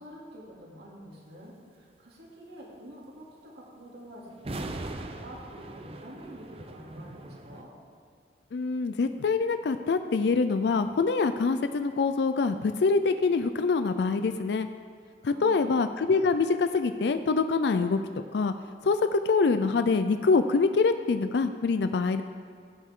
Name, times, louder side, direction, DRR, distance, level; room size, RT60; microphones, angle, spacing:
voice 1, 0.0-7.7 15.2-15.7, equal, 65° right, -4 dB, 2.7 m, -47 dB
sound 1, 4.4-7.6, right 2 dB, 30° right, 0.6 m, -40 dB
voice 2, 8.5-14.7 15.2-18.0 18.3-18.5 18.8-22.2, left 4 dB, 70° left, 9 dB, 0.4 m, -25 dB
15.5 x 9.2 x 3.7 m, 2.1 s
head